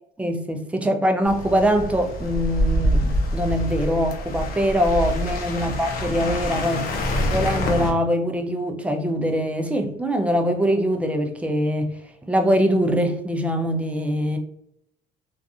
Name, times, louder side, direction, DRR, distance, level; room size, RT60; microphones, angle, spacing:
voice 1, 0.2-6.9 7.3-11.9 12.3-14.4, equal, 10° right, 0.4 m, -23 dB
sound 1, 1.2-7.9, left 1 dB, 60° left, 0.6 m, -25 dB
2.5 x 2.4 x 2.4 m
cardioid pair, 110°, 17 cm